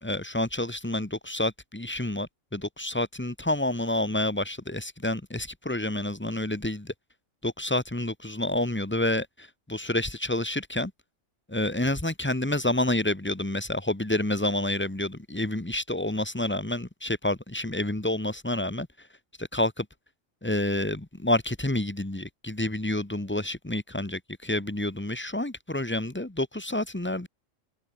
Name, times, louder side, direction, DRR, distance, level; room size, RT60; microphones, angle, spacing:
voice 1, 0.0-6.9 7.4-10.9 11.5-18.9 19.4-19.9 20.4-27.3, left 1 dB, 10° left, 1.4 m, -29 dB
omnidirectional pair, 1.3 m